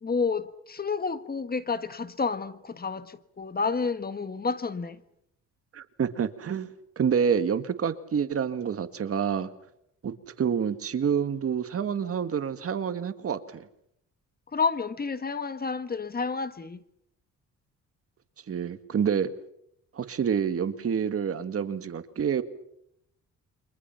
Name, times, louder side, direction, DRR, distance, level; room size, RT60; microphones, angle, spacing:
voice 1, 0.0-5.0 14.5-16.8, left 4 dB, 30° left, 1.6 m, -30 dB
voice 2, 5.7-6.7 7.0-9.5 10.0-13.7 18.5-19.3 19.9-22.4, right 7 dB, 50° right, 1.9 m, -28 dB
29.0 x 24.5 x 5.8 m
cardioid pair, 90°, 30 cm